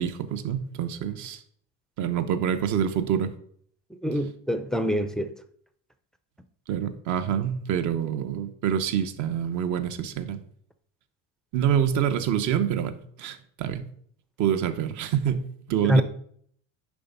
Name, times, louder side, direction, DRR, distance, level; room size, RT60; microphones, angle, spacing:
voice 1, 0.0-1.4 2.0-3.3 6.7-10.4 11.5-13.8 14.4-16.0, right 9 dB, 60° right, 1.0 m, -26 dB
voice 2, 3.9-5.3 15.8-16.0, equal, ahead, 0.4 m, -25 dB
10.0 x 3.5 x 5.5 m
cardioid pair, 140°, 34 cm